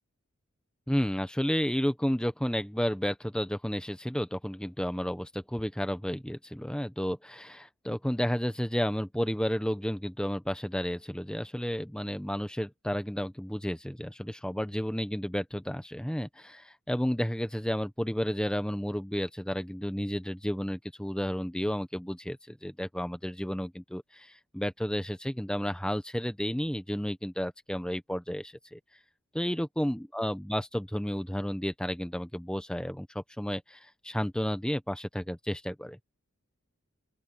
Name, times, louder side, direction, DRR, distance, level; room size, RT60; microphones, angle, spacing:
voice 1, 0.9-28.8 29.3-36.0, equal, 5° left, 1.0 m, -32 dB
open air
head